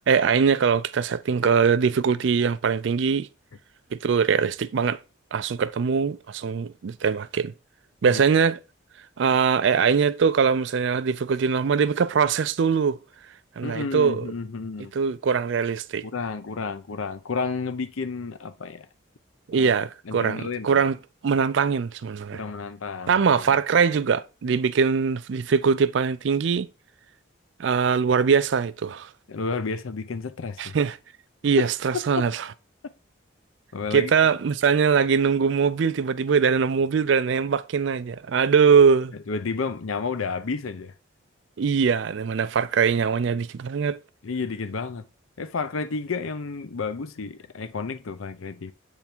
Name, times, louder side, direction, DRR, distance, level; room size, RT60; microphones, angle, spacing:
voice 1, 0.1-3.3 3.9-5.0 5.3-7.5 8.0-8.6 9.2-13.0 13.6-14.3 14.9-16.1 19.5-21.0 21.2-22.4 23.1-26.7 27.6-29.1 30.6-31.0 31.4-32.4 33.9-39.1 41.6-44.0, right 6 dB, 65° right, 0.4 m, -22 dB
voice 2, 13.6-14.9 16.0-18.9 19.5-19.7 20.1-20.8 22.3-23.6 29.3-30.8 31.6-31.7 32.2-32.3 33.7-34.1 39.3-40.9 44.2-45.0 45.4-48.7, left 4 dB, 80° left, 0.6 m, -31 dB
8.0 x 3.6 x 4.4 m
head